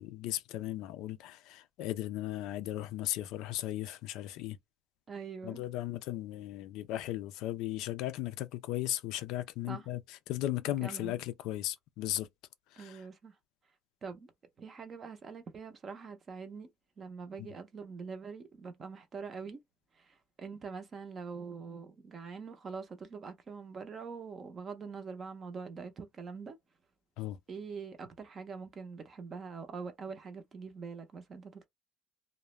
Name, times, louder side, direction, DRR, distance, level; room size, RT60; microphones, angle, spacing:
voice 1, 0.0-4.6 5.4-12.3 12.7-13.1 17.4-17.5 27.2-27.4, left 14 dB, 65° left, 0.3 m, -36 dB
voice 2, 5.1-5.6 9.7-9.8 10.8-11.2 12.8-13.3 14.0-14.3 14.6-16.7 17.0-19.6 20.0-26.6 27.5-31.7, right 5 dB, 25° right, 0.5 m, -44 dB
2.3 x 2.0 x 3.0 m
cardioid pair, 165°, 0 cm